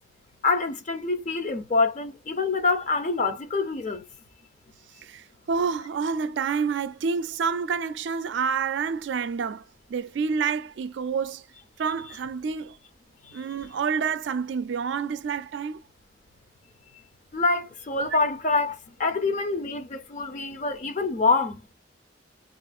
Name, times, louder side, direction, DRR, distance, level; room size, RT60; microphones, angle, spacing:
voice 1, 0.4-4.0 17.3-21.6, left 3 dB, 40° left, 0.5 m, -26 dB
voice 2, 5.0-9.6 9.9-11.4 11.8-12.8 13.3-15.8 18.1-18.2, right 6 dB, 75° right, 0.4 m, -28 dB
3.6 x 2.4 x 2.4 m
head